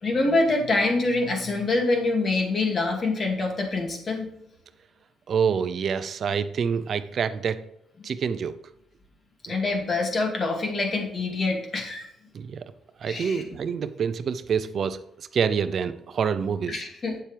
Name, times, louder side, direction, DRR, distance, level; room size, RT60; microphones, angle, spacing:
voice 1, 0.0-4.3 9.4-12.0 13.1-13.4 16.7-17.2, left 2 dB, 40° left, 2 dB, 2.4 m, -25 dB
voice 2, 5.3-7.6 8.0-8.5 9.5-9.6 12.3-12.7 13.0-16.8, right 6 dB, 55° right, 12 dB, 0.6 m, -27 dB
8.9 x 7.4 x 3.4 m, 0.82 s
cardioid pair, 90°, 0 cm